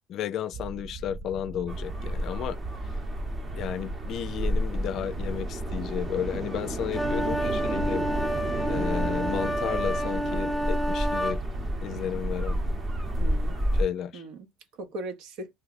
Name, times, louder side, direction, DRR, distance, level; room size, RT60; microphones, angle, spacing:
voice 1, 0.1-2.6 3.6-8.1 8.7-11.4 11.8-12.6 13.7-14.2, left 9 dB, 55° left, 0.4 m, -33 dB
sound 1, 0.5-13.2, right 3 dB, 50° right, 0.5 m, -39 dB
sound 2, 1.7-13.8, equal, 30° right, 0.9 m, -31 dB
sound 3, 6.9-11.4, equal, 5° right, 0.7 m, -29 dB
voice 2, 7.2-7.9 13.2-13.6 14.1-14.5 14.8-15.5, right 2 dB, 70° right, 0.9 m, -39 dB
2.6 x 2.2 x 4.0 m
cardioid pair, 120°, 0 cm